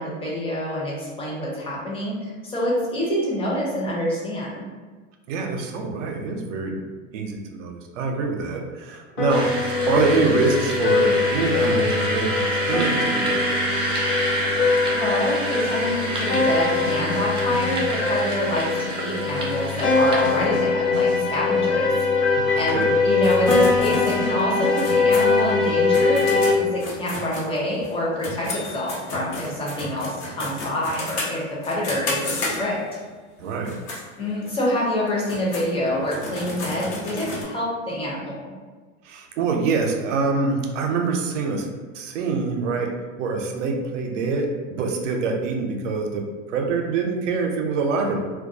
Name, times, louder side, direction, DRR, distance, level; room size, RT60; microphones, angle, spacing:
voice 1, 0.0-4.6 14.6-21.9 22.5-26.2 26.5-32.8 34.2-38.5, left 1 dB, 15° left, -5 dB, 0.7 m, -26 dB
voice 2, 5.3-6.8 7.1-13.4 22.4-22.9 33.4-33.8 39.0-41.7 41.9-42.9 43.2-48.2, right 4 dB, 70° right, 2 dB, 0.6 m, -25 dB
sound 1, 9.2-26.5, left 4 dB, 90° left, 0.9 m, -22 dB
sound 2, 9.3-20.4, right 1 dB, 15° right, 0.3 m, -28 dB
sound 3, 23.2-27.9 28.2-33.0 33.5-34.0 34.5-34.6 35.1-37.4, left 2 dB, 60° left, 0.9 m, -33 dB
2.2 x 2.2 x 2.6 m, 1.4 s
hypercardioid pair, 105°, 38 cm